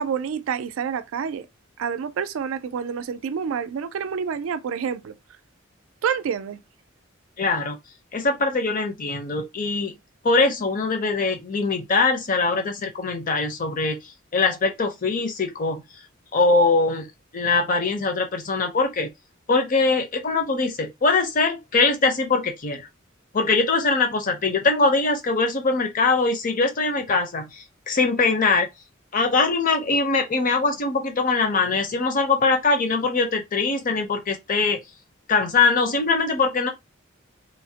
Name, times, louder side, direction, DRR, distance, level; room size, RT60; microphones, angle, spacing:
voice 1, 0.0-1.5 1.8-5.1 6.0-6.6, right 7 dB, 80° right, 0.3 m, -28 dB
voice 2, 7.4-7.8 8.1-9.9 10.2-14.0 14.3-15.8 16.3-17.1 17.3-19.1 19.5-22.9 23.3-28.7 29.1-34.8 35.3-36.7, left 3 dB, 40° left, 0.6 m, -22 dB
3.1 x 2.1 x 2.8 m
head